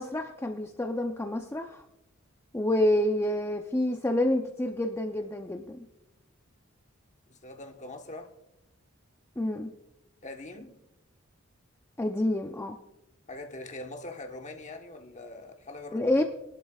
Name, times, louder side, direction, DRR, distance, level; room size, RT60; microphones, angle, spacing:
voice 1, 0.0-1.8 2.5-5.9 9.4-9.7 12.0-12.8 15.9-16.2, left 1 dB, 10° left, 0.6 m, -28 dB
voice 2, 7.3-8.3 10.2-10.8 13.3-16.2, left 2 dB, 35° left, 1.2 m, -42 dB
21.5 x 11.5 x 2.4 m
head